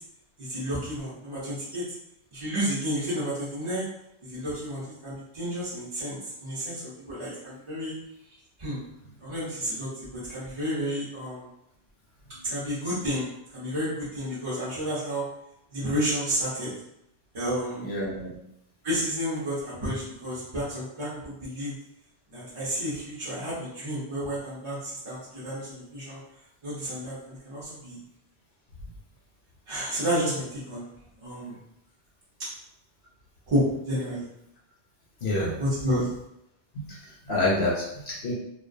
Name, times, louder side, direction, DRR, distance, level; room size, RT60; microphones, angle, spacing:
voice 1, 0.4-1.8 2.3-3.9 4.2-7.9 8.6-8.8 9.2-11.4 12.4-13.3 13.5-15.2 15.7-16.7 17.3-17.8 18.8-21.7 22.3-26.2 26.6-28.0 29.7-30.9 31.2-31.6 33.5-34.3 35.6-36.1, equal, 35° right, -9 dB, 0.5 m, -31 dB
voice 2, 17.8-18.4 35.2-35.5 36.7-36.9 37.3-38.3, left 1 dB, 70° left, -5 dB, 0.8 m, -27 dB
2.2 x 2.2 x 2.5 m, 0.81 s
omnidirectional pair, 1.2 m